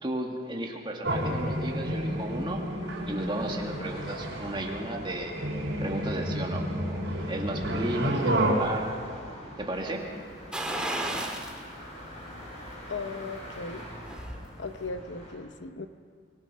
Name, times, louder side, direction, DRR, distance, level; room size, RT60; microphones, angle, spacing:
voice 1, 0.0-2.6 3.1-5.4 5.8-9.0 9.6-10.0, right 1 dB, 25° right, 0 dB, 2.3 m, -34 dB
sound 1, 1.0-8.5, right 1 dB, 90° right, 4.2 m, -30 dB
sound 2, 1.2-15.3, equal, 40° left, 6.6 m, -45 dB
sound 3, 10.5-11.6 12.0-12.1 13.6-14.4 14.7-14.8, right 1 dB, 5° right, 1.9 m, -33 dB
voice 2, 12.9-13.9 14.6-15.9, left 4 dB, 80° left, 10 dB, 0.9 m, -37 dB
24.5 x 19.5 x 5.6 m, 2.1 s
head